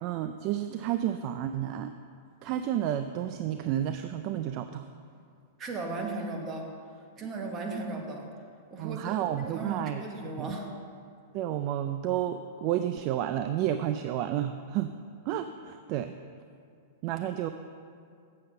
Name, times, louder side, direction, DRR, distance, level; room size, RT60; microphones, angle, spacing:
voice 1, 0.0-1.9 2.4-4.9 8.8-10.0 10.4-10.5 11.3-14.9 15.3-16.1 17.0-17.5, right 11 dB, 45° right, 9 dB, 0.3 m, -31 dB
voice 2, 5.6-6.7 7.2-8.3 8.7-10.7, right 3 dB, 30° right, 2 dB, 1.4 m, -36 dB
7.6 x 6.8 x 6.5 m, 2.3 s
hypercardioid pair, 130°, 0 cm